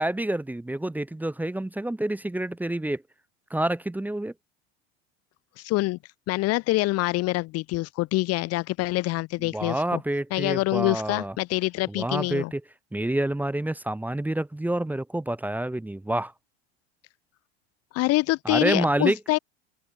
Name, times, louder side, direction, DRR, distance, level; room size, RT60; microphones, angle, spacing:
voice 1, 0.0-3.0 3.5-4.3 9.5-11.3 11.9-12.6 12.9-16.3 18.4-19.2, right 1 dB, 5° right, 1.2 m, -28 dB
voice 2, 5.6-6.0 6.3-10.0 10.3-12.5 17.9-19.4, left 20 dB, 45° left, 0.9 m, -25 dB
open air
hypercardioid pair, 100°, 33 cm